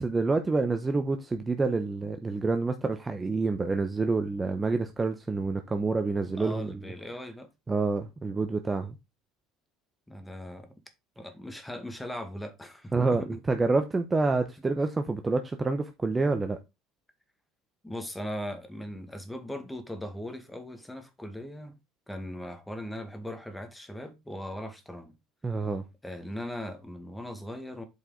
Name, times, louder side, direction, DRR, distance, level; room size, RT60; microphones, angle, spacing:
voice 1, 0.0-6.7 7.7-9.0 12.9-16.6 25.4-25.8, right 3 dB, 20° right, 0.9 m, -28 dB
voice 2, 6.4-7.5 10.1-10.7 11.2-13.3 17.8-21.7 22.1-25.1 26.0-27.8, left 1 dB, 5° left, 1.8 m, -39 dB
8.2 x 4.9 x 3.8 m
supercardioid pair, 110°, 0 cm